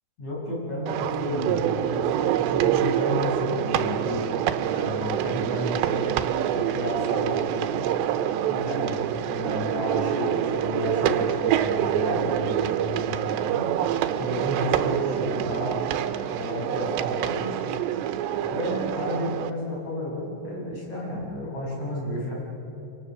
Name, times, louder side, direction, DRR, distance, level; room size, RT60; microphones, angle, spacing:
voice 1, 0.2-4.3 4.7-6.1 6.5-9.0 9.3-13.7 14.2-15.8 16.3-17.6 18.4-22.3, left 1 dB, 40° left, -3 dB, 7.2 m, -31 dB
sound 1, 0.9-19.5, right 11 dB, 90° right, 3.0 m, -26 dB
26.0 x 25.0 x 6.7 m, 3.0 s
omnidirectional pair, 4.9 m